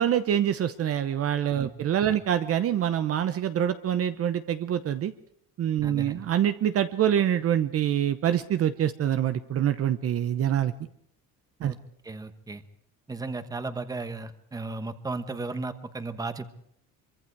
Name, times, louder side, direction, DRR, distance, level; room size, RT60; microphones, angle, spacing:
voice 1, 0.0-5.1 5.6-10.7 11.6-11.7, right 10 dB, 45° right, 11 dB, 0.9 m, -25 dB
voice 2, 5.8-6.3 11.6-11.8 12.0-12.6 13.1-16.5, right 3 dB, 10° right, 10 dB, 1.2 m, -35 dB
24.5 x 24.0 x 4.7 m, 0.70 s
cardioid pair, 165°, 34 cm